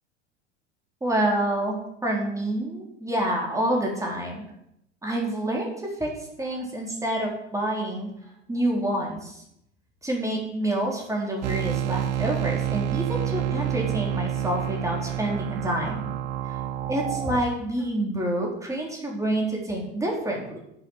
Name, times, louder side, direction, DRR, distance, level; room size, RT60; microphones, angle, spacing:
voice 1, 1.0-4.4 5.0-6.1 6.4-8.1 8.5-9.4 10.0-16.1 16.4-16.5 16.9-20.6, right 1 dB, 10° right, -1 dB, 4.2 m, -28 dB
sound 1, 11.4-17.4, right 11 dB, 70° right, 0.9 m, -28 dB
9.1 x 7.8 x 7.4 m, 0.79 s
figure-of-eight pair, 80°, 37 cm